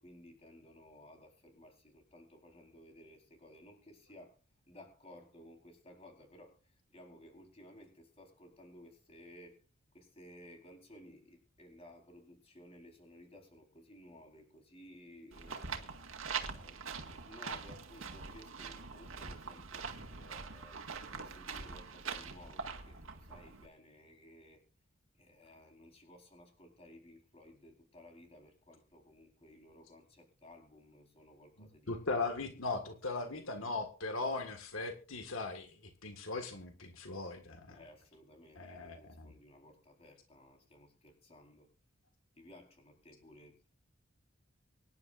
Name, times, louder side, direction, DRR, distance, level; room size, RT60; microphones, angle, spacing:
voice 1, 0.0-4.4 4.7-9.6 9.9-15.8 16.4-20.8 21.2-24.6 25.2-32.0 32.5-33.5 37.6-41.7 42.4-43.6, left 1 dB, 30° left, 2 dB, 4.1 m, -57 dB
sound 1, 15.3-23.7, right 5 dB, 75° right, 1.8 m, -43 dB
voice 2, 31.6-35.8 36.0-37.8 38.6-39.3, left 3 dB, 80° left, 6 dB, 1.8 m, -39 dB
24.5 x 10.5 x 2.5 m, 0.35 s
head